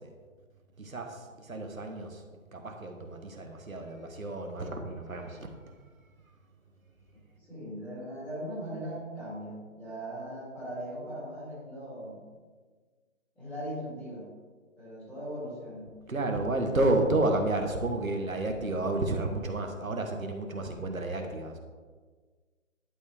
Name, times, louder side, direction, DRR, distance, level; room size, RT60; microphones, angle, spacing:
voice 1, 0.8-2.2 2.5-5.8 16.1-21.6, right 2 dB, 90° right, 3 dB, 1.3 m, -31 dB
voice 2, 7.4-12.2 13.4-14.3 14.8-16.0, equal, 5° left, -11 dB, 2.4 m, -39 dB
11.5 x 4.7 x 3.4 m, 1.5 s
figure-of-eight pair, 150°, 40 cm